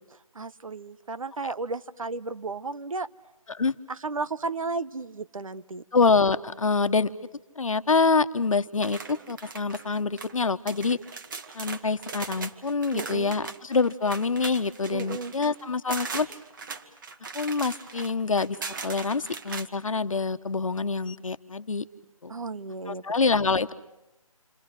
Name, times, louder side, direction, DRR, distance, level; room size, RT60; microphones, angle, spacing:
voice 1, 0.3-3.1 3.9-5.8 12.9-13.3 14.9-15.3 22.3-23.0, right 3 dB, 70° right, 14 dB, 1.1 m, -33 dB
voice 2, 5.9-7.1 7.6-11.0 11.5-16.3 17.3-18.6 18.8-21.8 22.2-22.3 22.9-23.7, left 4 dB, 65° left, 12 dB, 1.3 m, -26 dB
sound 1, 8.8-10.3 10.7-19.7, right 4 dB, 35° right, 1.8 m, -39 dB
29.0 x 24.0 x 7.8 m, 0.93 s
figure-of-eight pair, 160°, 18 cm